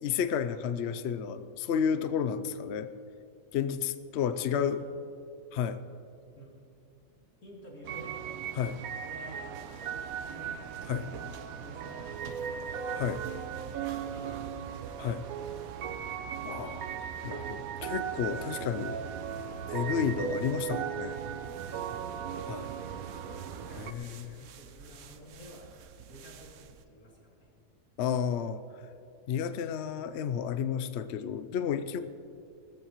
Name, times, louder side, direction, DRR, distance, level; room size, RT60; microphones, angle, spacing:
voice 1, 0.0-2.9 3.5-4.8 5.5-5.8 8.6-8.8 10.9-11.1 13.0-13.2 15.0-15.2 16.4-16.9 17.2-19.0 19.7-21.2 22.4-22.7 23.7-24.5 28.0-28.6 29.3-32.0, left 8 dB, 60° left, 11 dB, 0.7 m, -31 dB
voice 2, 4.4-5.1 6.4-6.5 7.4-8.2 9.0-10.0 10.3-10.6 11.2-12.6 13.8-15.8 21.8-22.2 24.4-25.7 26.1-27.5, equal, 90° left, -4 dB, 3.3 m, -51 dB
sound 1, 7.8-23.9, right 8 dB, 90° right, 1.2 m, -37 dB
sound 2, 9.5-26.9, right 7 dB, 65° right, 1.0 m, -52 dB
20.0 x 14.0 x 3.0 m, 2.7 s
omnidirectional pair, 1.5 m